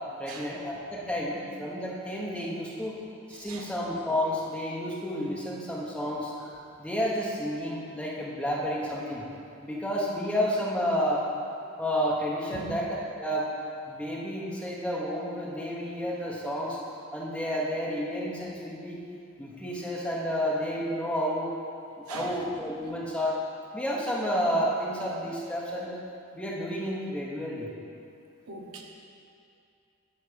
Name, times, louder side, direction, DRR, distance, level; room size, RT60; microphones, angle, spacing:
voice 1, 0.2-3.0 3.3-6.5 6.8-9.2 9.6-11.3 11.8-13.5 13.9-16.8 17.1-19.0 19.4-21.5 22.1-23.4 23.7-26.0 26.3-27.7, equal, 5° left, -5 dB, 1.1 m, -30 dB
voice 2, 3.3-3.7 12.5-12.8 22.1-22.4 28.5-28.8, right 3 dB, 80° right, 1 dB, 1.0 m, -41 dB
9.9 x 4.2 x 6.9 m, 2.5 s
head